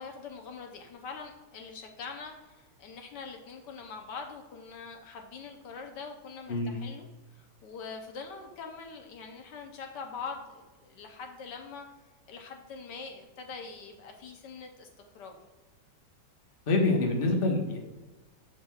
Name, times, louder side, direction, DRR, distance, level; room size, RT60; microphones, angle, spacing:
voice 1, 0.0-11.8 12.3-14.9 15.1-15.4, left 5 dB, 75° left, 4 dB, 1.4 m, -43 dB
voice 2, 16.7-17.8, left 2 dB, 35° left, 1 dB, 1.1 m, -26 dB
13.0 x 4.5 x 2.3 m, 1.2 s
omnidirectional pair, 1.9 m